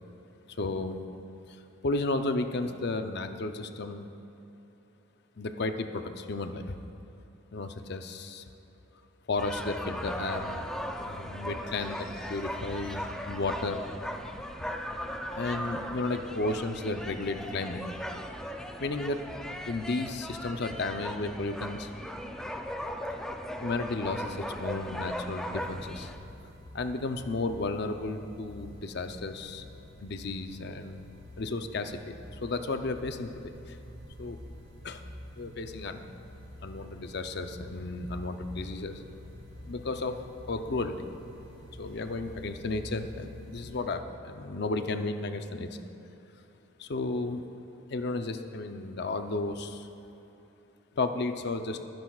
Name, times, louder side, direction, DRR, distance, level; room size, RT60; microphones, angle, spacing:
voice 1, 0.6-1.0 1.8-4.1 5.4-6.8 7.5-8.4 9.3-10.5 11.0-13.8 15.3-17.8 18.8-19.2 19.7-21.9 23.6-26.1 26.7-29.6 30.0-31.0 31.4-32.2 32.4-33.8 34.2-34.4 34.8-35.0 35.4-36.0 36.6-39.0 39.7-40.2 40.5-41.1 41.8-45.7 46.8-47.4 47.9-49.9 51.0-51.8, left 3 dB, 55° left, 7 dB, 0.6 m, -33 dB
sound 1, 9.4-26.2, equal, 5° left, 0.5 m, -38 dB
sound 2, 25.6-43.8, left 1 dB, 75° right, 2.7 m, -48 dB
23.0 x 10.5 x 2.4 m, 2.9 s
head